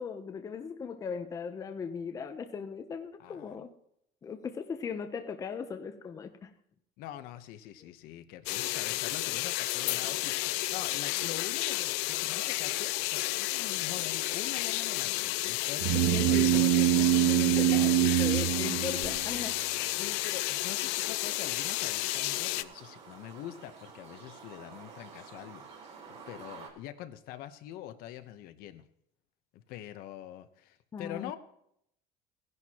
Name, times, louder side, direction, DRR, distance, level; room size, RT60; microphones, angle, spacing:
voice 1, 0.0-3.7 4.2-6.5 7.8-7.9 9.0-9.1 16.1-19.6 30.9-31.4, left 6 dB, 20° left, 6 dB, 0.7 m, -38 dB
voice 2, 3.2-3.6 7.0-18.4 19.7-28.8 29.5-31.4, left 12 dB, 60° left, 10 dB, 1.0 m, -44 dB
sound 1, 8.5-22.6, left 19 dB, 75° left, 0.5 m, -32 dB
sound 2, 15.8-19.5, right 19 dB, 65° right, 0.4 m, -25 dB
sound 3, 18.6-26.7, right 5 dB, 35° right, 3.6 m, -50 dB
17.0 x 11.0 x 2.9 m, 0.73 s
cardioid pair, 180°, 17 cm